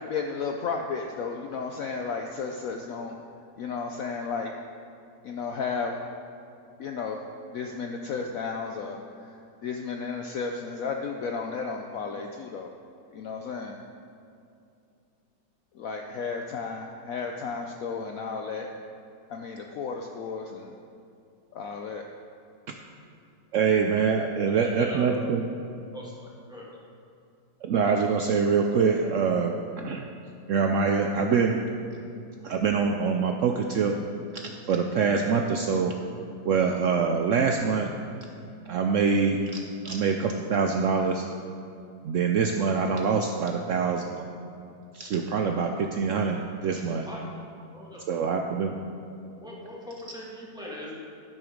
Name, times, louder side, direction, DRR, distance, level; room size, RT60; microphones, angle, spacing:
voice 1, 0.0-3.2 3.6-4.5 5.2-6.0 6.8-7.2 7.5-12.7 13.1-13.8 15.7-18.7 19.3-20.8 21.5-22.0, left 5 dB, 70° left, 2 dB, 0.8 m, -33 dB
voice 2, 23.5-25.4 27.6-30.1 30.5-31.6 32.4-33.9 34.3-35.9 36.4-37.9 38.7-39.4 39.8-41.3 42.0-44.3 44.9-47.1 48.1-48.7 50.1-50.2, right 5 dB, 90° right, 3 dB, 0.6 m, -25 dB
voice 3, 24.6-25.2 25.9-26.1 26.5-26.6 47.0-47.2 47.7-48.2 49.3-51.0, equal, ahead, -5 dB, 1.6 m, -40 dB
12.0 x 6.3 x 5.1 m, 2.6 s
omnidirectional pair, 1.9 m